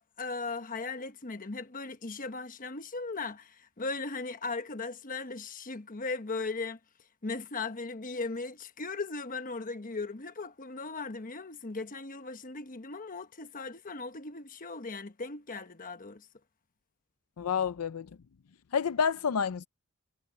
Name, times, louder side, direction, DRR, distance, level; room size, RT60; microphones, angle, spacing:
voice 1, 0.2-6.8 7.2-16.3, left 3 dB, 40° left, 1.2 m, -38 dB
voice 2, 17.4-18.1 18.7-19.7, left 6 dB, 75° left, 0.5 m, -29 dB
head